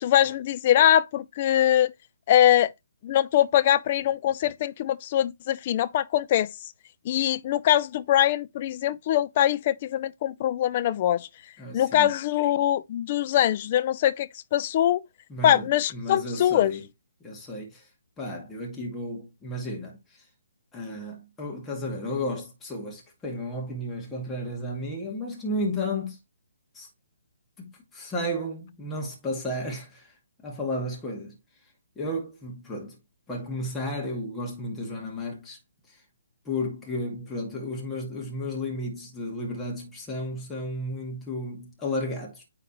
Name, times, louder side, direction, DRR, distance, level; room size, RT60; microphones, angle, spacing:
voice 1, 0.0-1.9 2.3-2.7 3.0-6.5 7.1-11.3 11.7-15.0 15.4-16.7, left 11 dB, 40° left, 0.5 m, -22 dB
voice 2, 11.6-12.1 15.3-16.9 17.2-17.9 18.2-20.2 20.7-26.2 26.7-26.9 27.6-30.1 30.4-31.4 32.0-33.0 33.3-35.6 35.9-36.0 36.4-42.4, left 1 dB, 10° left, 2.2 m, -33 dB
9.2 x 3.8 x 3.0 m
hypercardioid pair, 140°, 0 cm